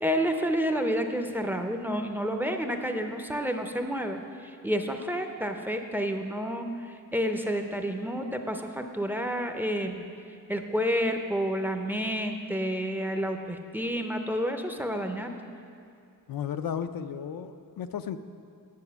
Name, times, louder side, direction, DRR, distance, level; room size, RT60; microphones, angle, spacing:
voice 1, 0.0-10.0 10.5-15.4, equal, 5° right, 5 dB, 0.5 m, -30 dB
voice 2, 16.3-18.2, left 8 dB, 85° left, 9 dB, 0.5 m, -34 dB
9.5 x 7.6 x 6.9 m, 2.4 s
wide cardioid pair, 165°, 34 cm